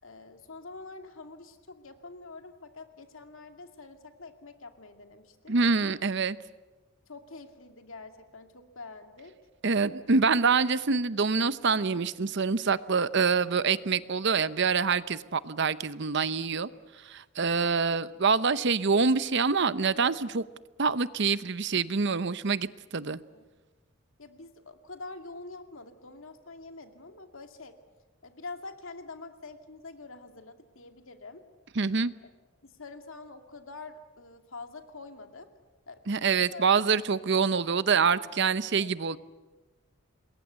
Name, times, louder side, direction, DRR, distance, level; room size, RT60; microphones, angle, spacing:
voice 1, 0.0-5.5 7.1-9.4 23.3-23.4 24.2-27.8 28.2-31.4 32.2-32.3 32.6-35.5 35.9-36.0 36.5-36.7 38.8-38.9, left 3 dB, 70° left, 6 dB, 2.3 m, -46 dB
voice 2, 5.5-6.4 9.6-16.7 17.0-20.4 20.8-23.2 31.8-32.1 36.1-39.2, right 5 dB, 55° right, 15 dB, 0.8 m, -26 dB
27.0 x 21.5 x 8.2 m, 1.2 s
head